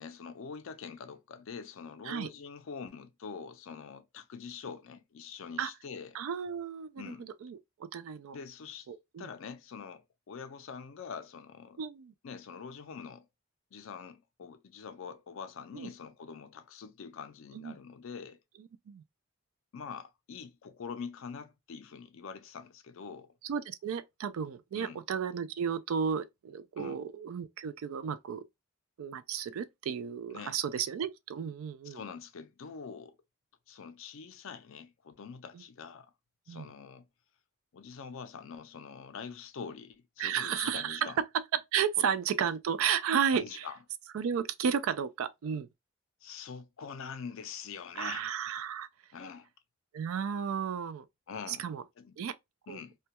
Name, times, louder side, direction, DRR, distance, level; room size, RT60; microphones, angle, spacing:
voice 1, 0.0-6.2 7.0-7.3 8.3-8.9 9.2-11.8 12.2-13.3 13.7-18.4 19.7-23.3 24.7-25.0 26.8-27.0 30.3-30.6 31.8-33.2 33.7-36.1 36.5-37.0 37.7-41.2 42.0-42.1 43.3-43.8 46.2-48.3 49.1-49.5 51.3-51.7 52.0-52.2 52.7-53.0, left 6 dB, 65° left, 0.4 m, -44 dB
voice 2, 6.1-7.1 7.4-8.4 8.9-9.3 11.8-12.1 15.7-15.9 17.5-17.8 18.9-19.0 23.4-28.4 29.0-32.0 36.5-36.7 40.2-41.1 41.7-43.7 44.1-45.7 48.0-48.9 49.9-51.1 51.5-51.8 52.2-52.4 52.7-52.8, right 7 dB, 75° right, 0.3 m, -33 dB
2.2 x 2.2 x 2.8 m
head